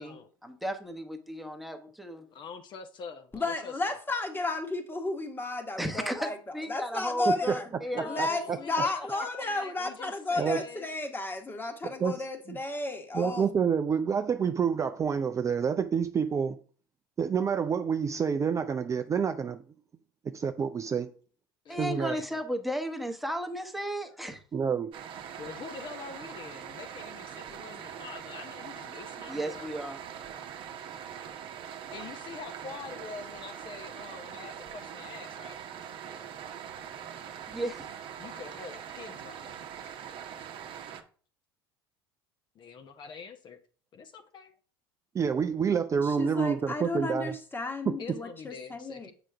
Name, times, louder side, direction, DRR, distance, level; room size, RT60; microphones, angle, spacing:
voice 1, 0.4-2.2 5.8-8.5 21.7-24.4 29.3-30.0 37.5-37.9, equal, ahead, 1.1 m, -35 dB
voice 2, 2.3-4.0 7.9-10.9 21.6-22.4 25.4-29.7 31.9-36.0 38.2-39.5 42.5-43.6 43.9-44.6 48.0-49.1, left 5 dB, 40° left, 0.8 m, -44 dB
voice 3, 3.3-6.3 6.7-7.7 8.0-13.5 46.0-49.1, left 2 dB, 15° left, 1.3 m, -33 dB
voice 4, 7.9-8.3 10.4-10.6 11.8-12.2 12.5-12.6 13.1-16.6 17.2-19.6 20.3-21.1 21.8-22.1 24.5-24.9 45.1-47.3 47.9-48.0, right 6 dB, 25° right, 0.5 m, -28 dB
sound 1, 24.9-41.0, right 8 dB, 45° right, 0.9 m, -42 dB
7.5 x 5.0 x 3.4 m
hypercardioid pair, 70°, 12 cm